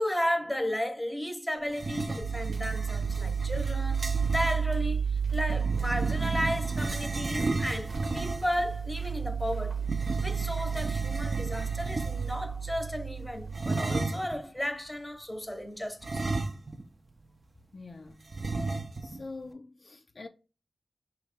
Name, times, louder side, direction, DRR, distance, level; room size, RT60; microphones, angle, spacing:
voice 1, 0.0-9.8 10.2-16.2, left 1 dB, 5° left, 0.9 m, -34 dB
sound 1, 1.7-4.6 5.5-8.6 9.8-12.4 13.5-14.4 16.0-16.9 17.2-17.3 18.3-19.2, right 3 dB, 45° right, 0.6 m, -33 dB
sound 2, 2.2-13.8, right 6 dB, 65° right, 0.9 m, -32 dB
voice 2, 17.7-18.2 19.0-20.3, left 3 dB, 50° left, 0.4 m, -44 dB
4.6 x 3.1 x 3.4 m
wide cardioid pair, 90°, 0 cm